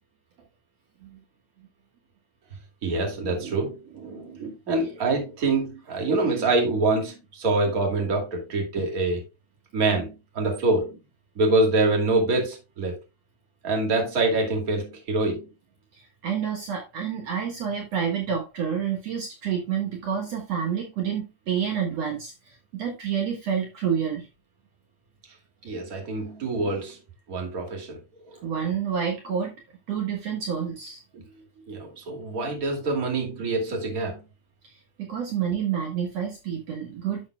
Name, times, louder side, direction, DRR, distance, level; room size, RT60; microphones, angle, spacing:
voice 1, 2.8-9.3 9.7-11.0 11.4-13.0 13.6-15.5 25.6-27.0 27.3-28.0 28.3-28.4 31.1-31.2 31.7-34.2, right 2 dB, 30° right, 2.5 m, -25 dB
voice 2, 15.9-24.3 28.4-29.5 29.9-31.0 34.6-37.3, right 7 dB, 60° right, 2.4 m, -29 dB
11.0 x 7.1 x 2.3 m
omnidirectional pair, 3.6 m